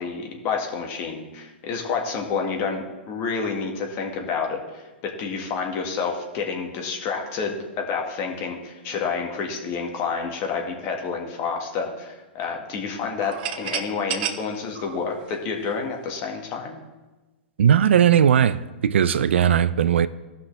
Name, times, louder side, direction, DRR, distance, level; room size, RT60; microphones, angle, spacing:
voice 1, 0.0-16.8, left 5 dB, 40° left, 1.7 m, -29 dB
sound 1, 13.2-16.0, right 9 dB, 55° right, 1.0 m, -32 dB
voice 2, 17.6-20.1, right 9 dB, 80° right, 0.4 m, -18 dB
16.5 x 5.8 x 3.3 m
hypercardioid pair, 130°, 6 cm